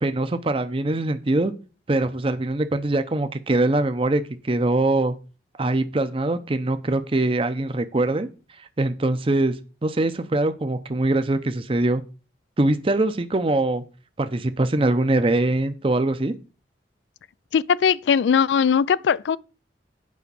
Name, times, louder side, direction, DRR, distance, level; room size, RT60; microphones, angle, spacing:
voice 1, 0.0-1.5 1.9-5.1 5.6-8.3 8.8-9.5 9.8-12.0 12.6-13.8 14.2-16.3, right 2 dB, 30° right, 0.6 m, -22 dB
voice 2, 17.5-19.4, left 7 dB, 85° left, 0.4 m, -19 dB
8.5 x 5.1 x 6.8 m
head